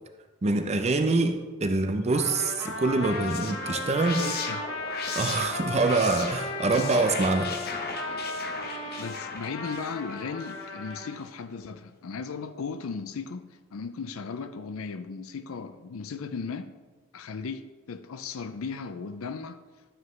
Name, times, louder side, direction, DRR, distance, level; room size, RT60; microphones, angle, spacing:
voice 1, 0.4-4.2 5.2-7.5, right 3 dB, 30° right, 0.5 m, -25 dB
Trumpet, 2.1-11.1, left 2 dB, 65° left, 1.2 m, -36 dB
sound 1, 2.9-10.9, left 5 dB, 50° left, 0.8 m, -38 dB
voice 2, 4.2-4.6 9.0-16.7 17.1-19.6, left 5 dB, 85° left, 0.5 m, -36 dB
11.0 x 7.3 x 3.2 m
head